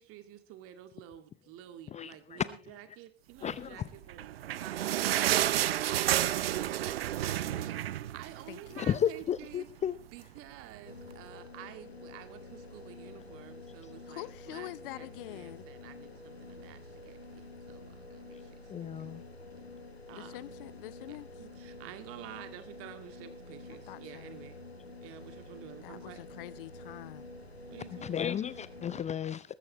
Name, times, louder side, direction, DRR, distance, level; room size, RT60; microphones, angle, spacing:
voice 1, 0.0-5.5 5.8-9.7 10.1-18.9 20.1-20.3 21.1-24.6 25.0-26.2 27.7-28.4, right 11 dB, 45° right, 9 dB, 2.3 m, -50 dB
voice 2, 1.9-2.5 3.4-3.9 8.8-10.0 18.7-19.2 28.0-29.5, left 9 dB, 20° left, 17 dB, 0.6 m, -33 dB
sound 1, 4.0-8.8 9.1-9.2 9.5-9.7 10.4-10.5, right 12 dB, 70° right, 0.6 m, -30 dB
voice 3, 8.5-8.9 14.1-15.7 20.1-21.3 23.7-24.4 25.8-27.3, left 17 dB, 60° left, 20 dB, 0.8 m, -45 dB
sound 2, 10.8-29.0, left 2 dB, 90° left, 1.6 m, -48 dB
20.0 x 14.5 x 3.1 m, 0.33 s
figure-of-eight pair, 75°, 31 cm